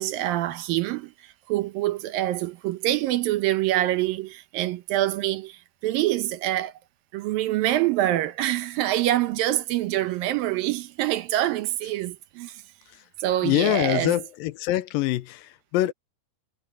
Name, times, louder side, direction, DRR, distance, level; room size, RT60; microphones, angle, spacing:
voice 1, 0.0-6.7 7.1-12.6 13.2-14.1, right 14 dB, 80° right, 2.7 m, -25 dB
voice 2, 13.4-15.9, left 15 dB, 80° left, 2.4 m, -24 dB
omnidirectional pair, 4.1 m